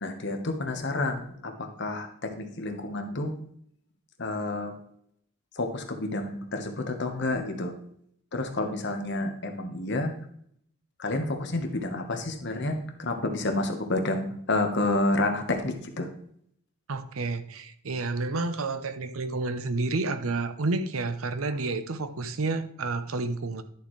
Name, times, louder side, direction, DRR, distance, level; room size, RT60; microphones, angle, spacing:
voice 1, 0.0-3.3 4.2-4.7 5.6-7.7 8.3-10.1 11.0-16.1, left 2 dB, 55° left, 5 dB, 1.2 m, -29 dB
voice 2, 16.9-23.6, right 3 dB, 75° right, 11 dB, 0.7 m, -30 dB
11.0 x 6.9 x 3.2 m, 0.66 s
head